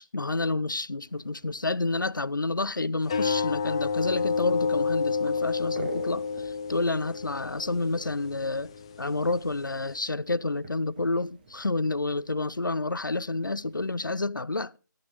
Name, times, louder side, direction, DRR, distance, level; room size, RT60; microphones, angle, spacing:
voice 1, 0.0-8.7 9.0-14.8, left 2 dB, 80° left, 0.5 m, -29 dB
sound 1, 1.1-13.9, right 3 dB, 25° right, 1.9 m, -49 dB
sound 2, 3.0-10.0, left 5 dB, 15° left, 0.6 m, -30 dB
13.0 x 9.7 x 4.9 m
figure-of-eight pair, 155°, 10 cm